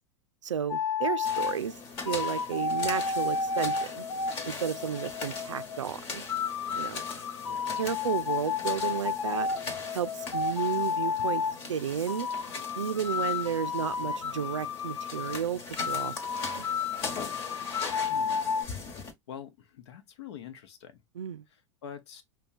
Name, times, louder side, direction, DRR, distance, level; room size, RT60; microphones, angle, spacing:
voice 1, 0.4-1.8 2.0-4.1 4.5-6.2 6.8-7.0 7.8-9.5 9.9-12.3 12.7-16.6 21.2-21.4, right 8 dB, 80° right, 0.4 m, -33 dB
sound 1, 0.7-1.6 2.1-5.8 6.3-11.6 12.1-15.4 15.8-18.6, left 5 dB, 85° left, 0.5 m, -32 dB
sound 2, 1.2-19.1, left 4 dB, 40° left, 1.3 m, -40 dB
voice 2, 18.1-19.0 19.3-21.0 21.5-22.2, left 9 dB, 65° left, 0.9 m, -46 dB
5.4 x 2.2 x 2.5 m
figure-of-eight pair, 90°, 15 cm